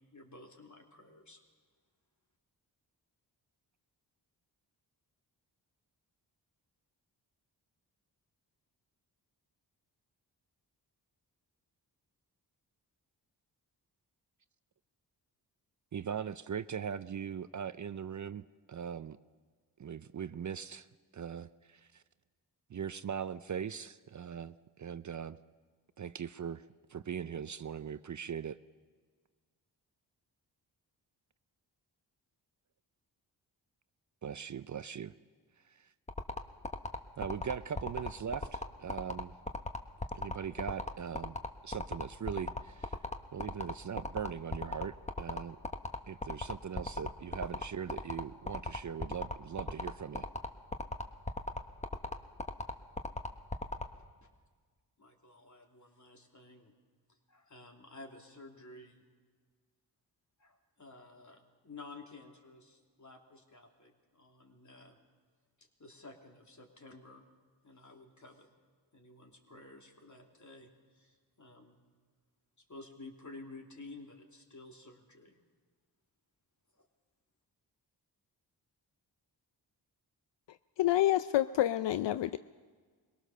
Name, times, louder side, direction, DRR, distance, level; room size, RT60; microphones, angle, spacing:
voice 1, 0.1-1.4 53.9-54.3 55.0-56.7 57.3-59.0 60.4-65.0 65.6-67.2 67.6-68.5 68.9-71.7 72.7-75.4 76.8-76.9, left 2 dB, 40° left, 2 dB, 3.0 m, -53 dB
voice 2, 15.9-19.2 19.8-20.9 21.1-22.0 22.7-25.4 26.0-26.6 26.9-28.6 34.2-35.1 35.6-35.9 37.2-39.3 40.1-41.4 41.6-43.0 43.3-45.6 46.1-50.3, right 8 dB, 45° right, 14 dB, 0.5 m, -40 dB
sound 1, 36.1-53.8, left 2 dB, 15° left, 1.3 m, -36 dB
voice 3, 80.8-82.4, left 13 dB, 75° left, 13 dB, 0.5 m, -28 dB
21.5 x 18.0 x 6.7 m, 1.5 s
cardioid pair, 50°, 44 cm